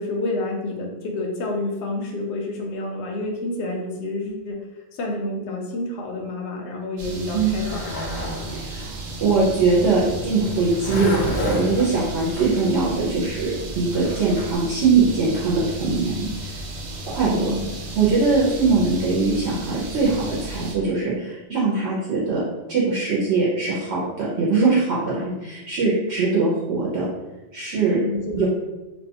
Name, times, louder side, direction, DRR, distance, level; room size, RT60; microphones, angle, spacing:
voice 1, 0.0-4.6 4.9-7.9 17.2-17.7 27.9-28.5, left 2 dB, 70° left, 0 dB, 0.8 m, -29 dB
sound 1, 7.0-20.8, right 2 dB, 85° right, 1.0 m, -34 dB
Skateboard, 7.1-14.6, equal, 85° left, 1.1 m, -31 dB
voice 2, 8.6-8.9 9.2-16.3 17.1-17.5 17.9-22.4 22.7-27.1 27.5-28.0 28.4-28.5, right 4 dB, 65° right, -7 dB, 0.8 m, -21 dB
2.6 x 2.2 x 2.8 m, 1.0 s
omnidirectional pair, 1.3 m